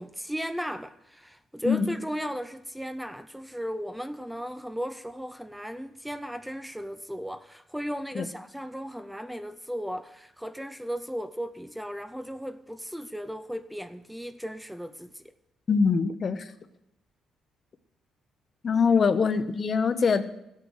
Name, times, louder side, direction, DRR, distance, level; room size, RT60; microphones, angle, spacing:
voice 1, 0.0-15.3, equal, 5° right, 0.5 m, -36 dB
voice 2, 15.7-16.4 18.6-20.2, left 5 dB, 45° left, 0.9 m, -23 dB
15.5 x 8.4 x 6.4 m
cardioid pair, 90°, 0 cm